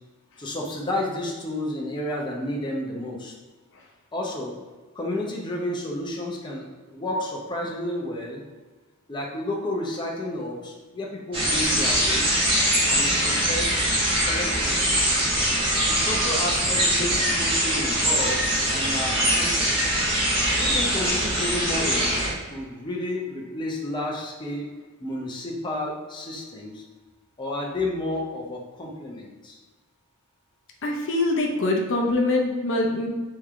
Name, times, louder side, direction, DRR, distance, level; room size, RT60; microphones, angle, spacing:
voice 1, 0.4-3.3 4.1-4.6 4.9-6.7 6.9-8.4 9.1-12.4 12.7-13.8 14.2-14.8 15.9-19.8 20.6-24.7 25.0-26.8 27.4-29.6, left 1 dB, 20° left, -2 dB, 0.7 m, -31 dB
sound 1, 11.3-22.3, equal, 25° right, 1.4 m, -23 dB
voice 2, 30.8-33.1, left 2 dB, 60° left, 1 dB, 0.6 m, -23 dB
3.7 x 3.3 x 4.3 m, 1.3 s
head